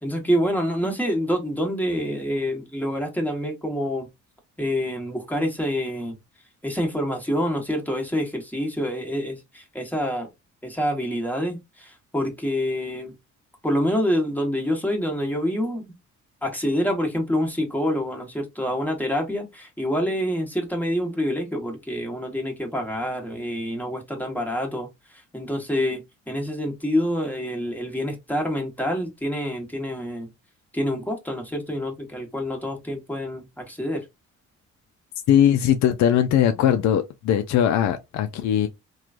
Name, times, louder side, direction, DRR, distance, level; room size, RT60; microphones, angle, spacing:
voice 1, 0.0-4.1 4.6-6.1 6.6-10.3 10.6-13.1 13.6-15.9 16.4-24.9 25.3-30.3 30.7-34.0, equal, 5° left, 1.1 m, -27 dB
voice 2, 35.3-38.7, left 10 dB, 65° left, 0.4 m, -20 dB
3.0 x 2.3 x 2.4 m
cardioid pair, 90°, 30 cm